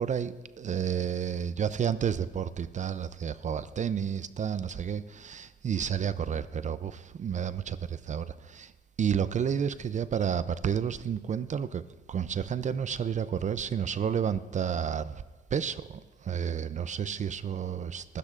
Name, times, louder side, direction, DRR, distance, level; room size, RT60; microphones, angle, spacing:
voice 1, 0.0-8.7 9.0-11.8 12.1-15.2 15.5-18.2, right 8 dB, 40° right, 0.4 m, -31 dB
24.5 x 13.5 x 2.5 m
cardioid pair, 90°, 20 cm